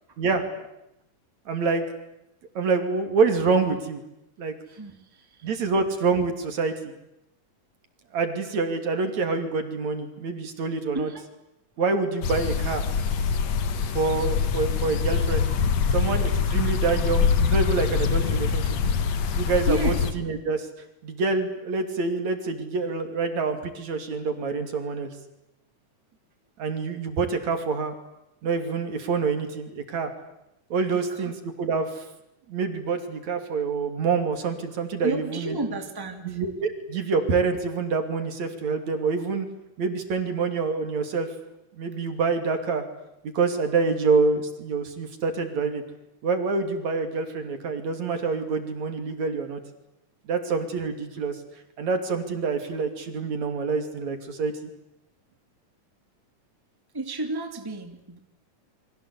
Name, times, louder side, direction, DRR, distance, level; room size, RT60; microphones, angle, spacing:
voice 1, 1.5-1.8 2.6-4.0 4.4-4.6 5.4-6.9 8.1-11.1 11.8-12.9 14.0-15.5 15.9-18.7 19.3-20.7 21.0-25.1 26.6-27.9 28.4-30.1 30.7-31.3 31.6-32.0 32.5-35.6 36.2-39.5 39.8-41.3 41.8-42.8 43.3-45.8 46.2-49.6 50.3-51.4 51.8-54.5, right 4 dB, 60° right, 7 dB, 3.9 m, -26 dB
voice 2, 4.7-5.5 10.9-11.2 11.8-11.9 18.2-18.4 19.7-20.0 30.9-31.3 35.0-36.4 56.9-58.2, right 2 dB, 5° right, 5 dB, 2.5 m, -32 dB
sound 1, 12.2-20.1, left 6 dB, 60° left, 2.7 m, -24 dB
29.5 x 24.0 x 8.4 m, 0.85 s
omnidirectional pair, 3.7 m